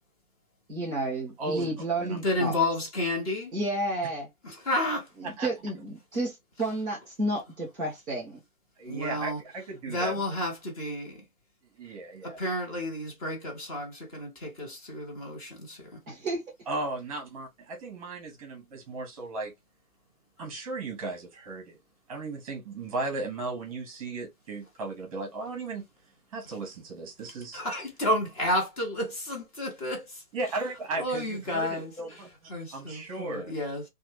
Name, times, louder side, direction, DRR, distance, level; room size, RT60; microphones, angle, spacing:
voice 1, 0.7-2.5 3.5-4.3 5.2-8.4 16.1-16.4, right 2 dB, ahead, 0.5 m, -31 dB
voice 2, 1.4-1.7 2.0-2.2 5.2-5.5 8.8-10.2 11.8-12.4 16.7-19.5 20.4-21.8 22.1-25.8 26.3-27.6 30.3-32.3 32.7-33.5, right 3 dB, 25° right, 0.9 m, -35 dB
voice 3, 2.2-3.5 4.4-5.1 8.9-9.4 9.9-11.2 12.2-15.9 27.5-30.2 31.0-32.2 32.5-33.8, left 1 dB, 25° left, 0.9 m, -31 dB
3.1 x 2.2 x 3.1 m
figure-of-eight pair, 135°, 44 cm